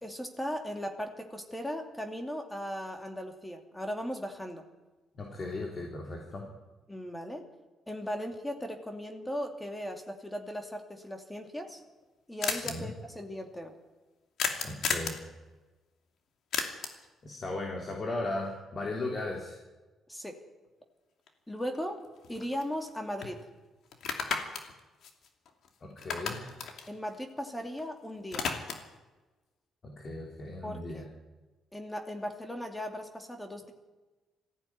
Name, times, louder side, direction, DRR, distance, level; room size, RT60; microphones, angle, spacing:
voice 1, 0.0-4.6 6.9-7.5 7.9-11.8 12.3-13.7 20.1-20.4 21.5-22.0 22.3-23.4 26.9-28.5 30.6-31.1 31.7-33.7, equal, 10° left, 4 dB, 2.6 m, -37 dB
voice 2, 5.2-6.4 12.4-12.9 14.6-15.2 17.2-19.6 25.8-26.6 29.8-31.0, left 2 dB, 40° left, 0 dB, 3.6 m, -37 dB
sound 1, 11.5-11.6 11.7-11.8 12.0-12.1 12.4-12.7 14.4-15.2 16.5-17.1 21.3-21.4 21.7-22.9 23.2-23.3 23.9-25.7 26.0-27.8 28.1-29.0, left 6 dB, 70° left, 2.6 m, -34 dB
19.0 x 15.0 x 9.6 m, 1.2 s
cardioid pair, 90°, 0 cm